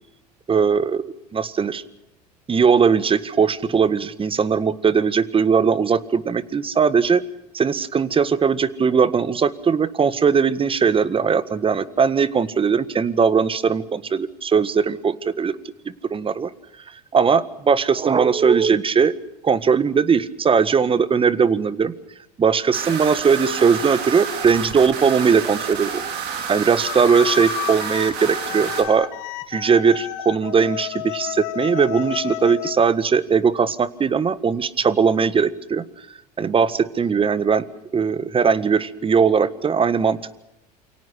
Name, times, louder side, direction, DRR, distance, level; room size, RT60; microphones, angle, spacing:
voice 1, 0.5-1.0 1.3-1.8 2.5-7.2 7.5-15.6 16.1-16.5 17.1-19.1 19.4-21.9 22.4-26.0 26.5-29.1 29.5-35.8 36.4-37.7 37.9-40.3, right 6 dB, 25° right, 16 dB, 1.7 m, -19 dB
sound 1, 22.7-28.8, right 7 dB, 55° right, 5.1 m, -29 dB
sound 2, 26.8-32.8, left 15 dB, 65° left, 2.1 m, -31 dB
28.5 x 24.0 x 6.3 m, 0.84 s
hypercardioid pair, 75°, 21 cm